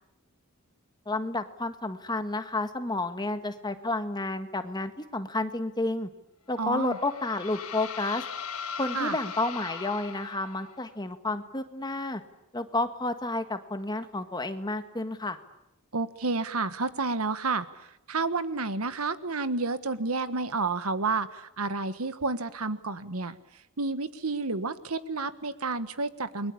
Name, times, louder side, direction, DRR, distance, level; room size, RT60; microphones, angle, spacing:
voice 1, 1.0-6.1 6.5-8.2 8.8-12.2 12.5-15.4, left 2 dB, 20° left, 8 dB, 1.6 m, -31 dB
sound 1, 6.6-10.9, left 6 dB, 90° left, 1.7 m, -39 dB
voice 2, 6.6-7.0 8.9-9.2 15.9-23.4 23.8-26.5, right 3 dB, 80° right, 12 dB, 1.5 m, -30 dB
29.5 x 22.5 x 8.6 m, 0.84 s
head